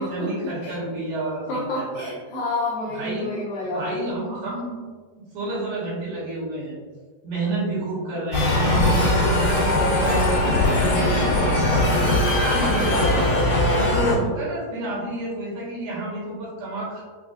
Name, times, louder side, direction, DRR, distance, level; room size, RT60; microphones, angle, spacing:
voice 1, 0.0-2.1 2.9-3.3 3.7-4.8 5.1-6.8 7.2-11.4 11.9-13.4 13.7-17.0, right 2 dB, 70° right, -9 dB, 2.8 m, -30 dB
voice 2, 1.5-4.1 12.7-13.2, left 2 dB, 80° left, -6 dB, 2.1 m, -29 dB
sound 1, 8.3-14.1, left 1 dB, 55° left, 1.9 m, -20 dB
6.4 x 2.3 x 2.4 m, 1.5 s
omnidirectional pair, 4.8 m